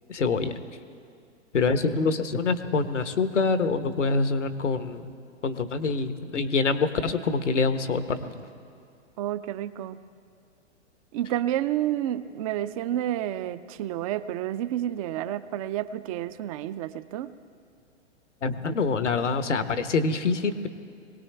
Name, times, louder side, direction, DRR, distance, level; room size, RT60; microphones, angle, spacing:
voice 1, 0.1-0.5 1.5-5.1 5.4-8.4 18.4-20.7, left 4 dB, 80° left, 10 dB, 1.1 m, -25 dB
voice 2, 9.2-10.0 11.1-17.3, right 12 dB, 30° right, 14 dB, 0.5 m, -30 dB
22.5 x 18.0 x 3.4 m, 2.3 s
figure-of-eight pair, 115°, 35 cm